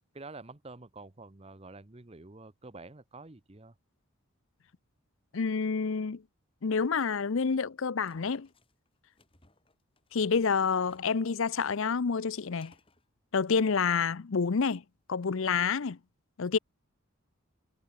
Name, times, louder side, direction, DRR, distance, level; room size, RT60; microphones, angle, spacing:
voice 1, 0.1-3.7, right 3 dB, 25° right, 0.8 m, -48 dB
voice 2, 5.3-6.2 6.6-8.5 10.1-12.7 13.3-14.8 15.1-16.0 16.4-16.6, left 5 dB, 60° left, 0.6 m, -28 dB
sound 1, 8.1-11.2 11.5-13.1, left 3 dB, 25° left, 4.7 m, -65 dB
head